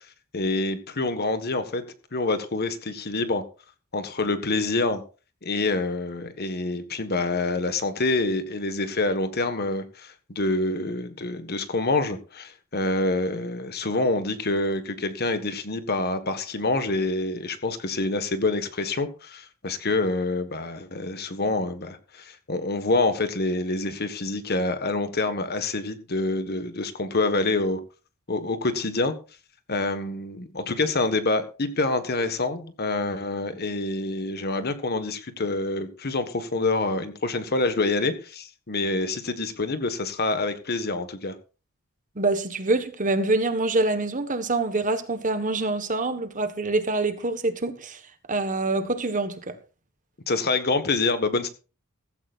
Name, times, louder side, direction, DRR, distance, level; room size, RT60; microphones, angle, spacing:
voice 1, 0.3-1.8 2.1-3.4 3.9-5.0 5.4-27.8 28.3-29.1 29.7-41.3 50.3-51.5, left 2 dB, 45° left, 1.5 m, -26 dB
voice 2, 42.2-48.0 48.3-49.6, right 2 dB, 35° right, 1.4 m, -25 dB
16.0 x 15.0 x 2.5 m
head